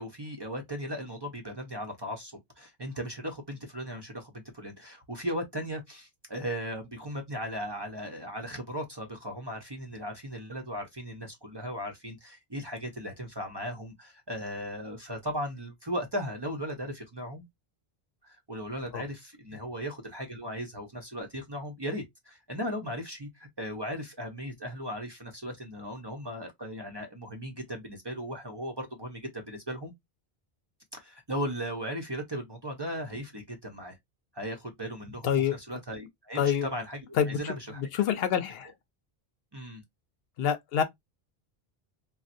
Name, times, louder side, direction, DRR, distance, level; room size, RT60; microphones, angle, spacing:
voice 1, 0.0-17.4 18.2-29.9 30.9-34.0 34.3-37.8 39.5-39.8, equal, 30° right, 0.6 m, -37 dB
voice 2, 35.2-35.6 36.4-36.7 37.2-38.7 40.4-40.8, left 8 dB, 75° left, 0.8 m, -27 dB
4.1 x 2.1 x 2.5 m
omnidirectional pair, 1.0 m